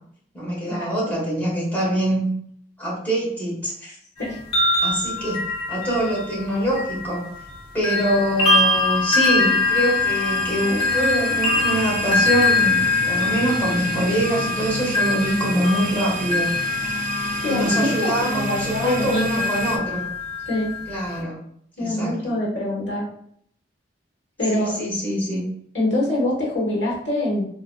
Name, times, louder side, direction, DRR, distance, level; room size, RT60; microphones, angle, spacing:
voice 1, 0.3-2.3 2.8-4.0 4.8-5.4 5.7-7.2 7.7-16.5 17.4-20.0 20.9-21.4 21.8-22.3 24.5-25.5, right 1 dB, 10° left, -6 dB, 1.2 m, -24 dB
sound 1, 4.2-7.5 7.8-21.2, left 3 dB, 30° left, 0.8 m, -24 dB
sound 2, 8.1-19.8, right 3 dB, 50° right, 0.4 m, -31 dB
voice 2, 17.4-19.4 20.5-20.7 21.8-23.0 24.4-24.7 25.7-27.5, left 1 dB, 75° left, -4 dB, 1.2 m, -24 dB
3.7 x 2.7 x 2.2 m, 0.65 s
head